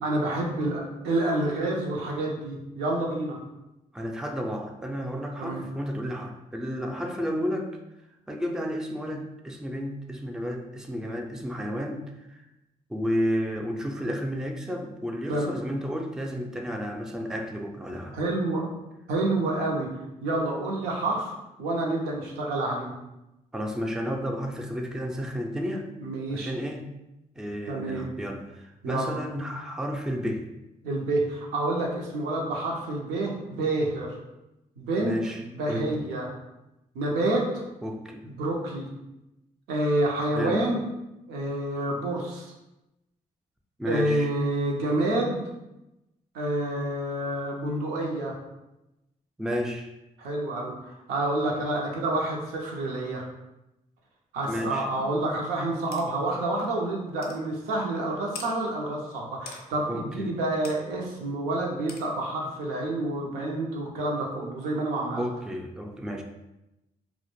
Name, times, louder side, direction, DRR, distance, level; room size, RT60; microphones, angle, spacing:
voice 1, 0.0-3.4 5.4-5.6 15.3-15.6 18.1-18.7 19.1-22.9 26.0-26.5 27.7-28.1 28.8-29.2 30.8-34.2 34.8-36.3 36.9-37.6 38.3-38.9 39.7-40.8 41.3-42.5 43.8-45.4 46.3-48.3 50.2-53.2 54.3-65.2, right 2 dB, 90° right, -2 dB, 0.5 m, -28 dB
voice 2, 3.9-7.7 8.3-12.4 12.9-18.2 23.5-25.8 26.3-26.9 27.4-30.4 35.0-35.4 35.7-35.9 37.8-38.3 40.4-40.6 43.8-44.3 49.4-49.9 54.5-55.1 59.9-60.4 65.2-66.2, equal, 5° right, 3 dB, 0.3 m, -32 dB
sound 1, 55.9-56.1 56.6-56.7 57.2-57.4 58.3-58.5 59.5-59.6 60.6-60.8 61.9-62.1, left 5 dB, 80° left, 0.4 m, -40 dB
2.1 x 2.0 x 2.9 m, 0.95 s
supercardioid pair, 50°, 16 cm